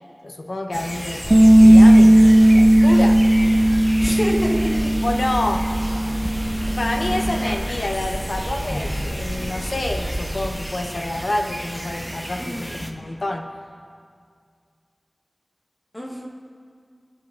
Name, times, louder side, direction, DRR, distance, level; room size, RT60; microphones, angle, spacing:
voice 1, 0.2-3.3 5.0-5.7 6.7-13.5, left 1 dB, 65° left, 4 dB, 0.9 m, -28 dB
sound 1, 0.7-12.9, equal, ahead, 1.0 m, -34 dB
sound 2, 1.2-10.5, right 1 dB, 25° right, 2.4 m, -29 dB
Bass guitar, 1.3-7.6, right 1 dB, 40° right, 0.7 m, -15 dB
voice 2, 4.0-4.9 6.7-6.8 12.4-13.0 15.9-16.3, equal, 20° left, -2 dB, 1.5 m, -28 dB
23.5 x 7.8 x 2.5 m, 2.2 s
wide cardioid pair, 60°, 0 cm